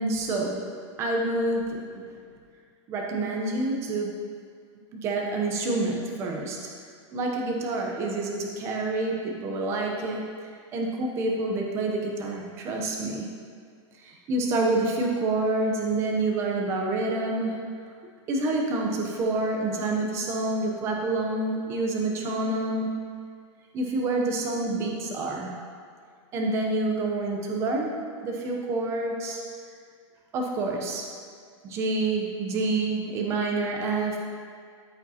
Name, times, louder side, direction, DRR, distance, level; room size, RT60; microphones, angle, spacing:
voice 1, 0.0-2.1 2.9-4.1 4.9-6.7 7.1-10.3 10.7-13.3 14.0-17.6 18.3-22.9 23.7-25.5 26.3-28.0 28.2-29.5 30.3-31.1 31.6-34.2, right 2 dB, 15° right, 0 dB, 0.7 m, -28 dB
13.0 x 5.0 x 2.8 m, 2.1 s
supercardioid pair, 180°, 16 cm